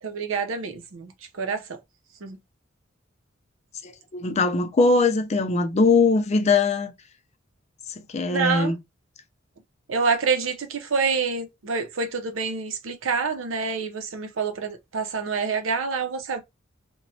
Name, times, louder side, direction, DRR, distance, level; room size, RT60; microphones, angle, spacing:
voice 1, 0.0-1.1 1.4-1.8 2.2-2.4 8.3-8.7 9.9-16.4, right 5 dB, 90° right, 0.6 m, -27 dB
voice 2, 3.8-6.9 8.1-8.8, left 3 dB, 35° left, 0.4 m, -21 dB
3.0 x 2.2 x 2.6 m
head